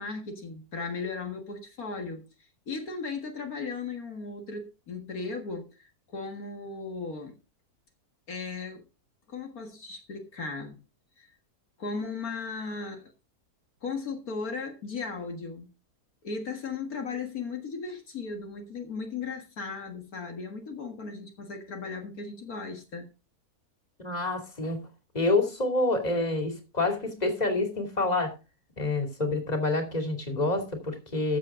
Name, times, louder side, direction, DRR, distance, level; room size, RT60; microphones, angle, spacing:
voice 1, 0.0-2.2 2.7-7.4 8.3-8.8 9.3-10.7 11.2-11.4 11.8-13.1 13.8-15.7 16.2-23.1, left 4 dB, 70° left, 2.2 m, -36 dB
voice 2, 24.0-24.8 25.1-28.3 28.8-31.4, left 2 dB, 25° left, 2.9 m, -27 dB
14.5 x 7.6 x 3.7 m
omnidirectional pair, 1.6 m